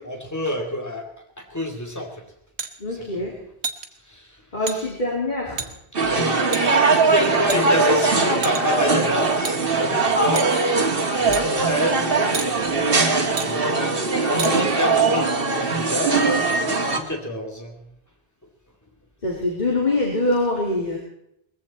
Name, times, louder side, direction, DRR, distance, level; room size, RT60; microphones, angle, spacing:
voice 1, 0.1-1.1 1.4-2.2 2.9-3.3 4.1-4.3 4.6-4.9 6.0-6.4 7.1-9.3 9.7-10.5 11.2-12.3 13.4-17.8, left 1 dB, 15° left, 2 dB, 2.5 m, -28 dB
sound 1, 2.6-2.7 3.6-3.9 4.7-4.8 5.6-5.7 6.5-6.6 7.5-7.9 8.4-8.8 9.4-9.6 10.4-10.5 11.3-11.4 12.3-12.5 13.4-13.5 14.4-14.5, right 5 dB, 85° right, 1.5 m, -29 dB
voice 2, 2.8-3.4 4.5-5.6 11.5-11.6 19.2-21.0, left 2 dB, 45° left, -1 dB, 2.9 m, -24 dB
sound 2, 5.9-17.0, right 3 dB, 60° right, 1.8 m, -20 dB
20.5 x 15.0 x 4.2 m, 0.77 s
omnidirectional pair, 1.1 m